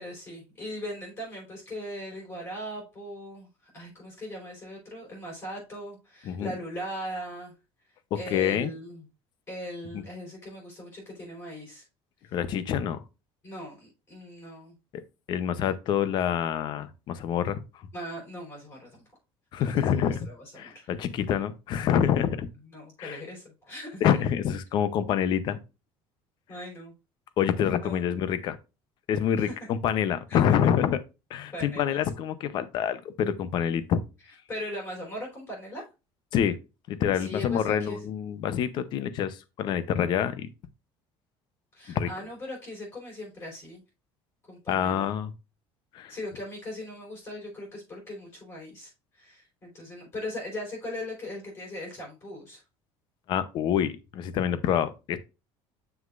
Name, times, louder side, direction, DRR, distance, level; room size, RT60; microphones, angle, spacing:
voice 1, 0.0-3.5 3.7-7.5 8.1-9.0 9.5-11.8 13.4-14.7 17.9-19.0 19.6-20.9 22.7-24.1 26.5-26.9 27.8-28.0 29.4-29.5 30.3-30.4 31.5-32.0 34.5-35.9 37.1-38.0 41.7-43.8 44.5-45.1 46.1-48.9 49.2-52.6, left 1 dB, 25° left, 4.3 m, -39 dB
voice 2, 8.3-8.7 12.3-13.0 15.3-17.6 19.5-20.3 20.6-22.5 23.0-23.2 24.0-25.6 27.4-28.6 29.1-31.0 31.3-34.0 36.3-36.6 36.9-40.5 41.9-42.1 44.7-45.3 45.9-46.1 53.3-55.2, left 9 dB, 45° left, 0.7 m, -26 dB
7.3 x 6.4 x 2.5 m
cardioid pair, 165°, 11 cm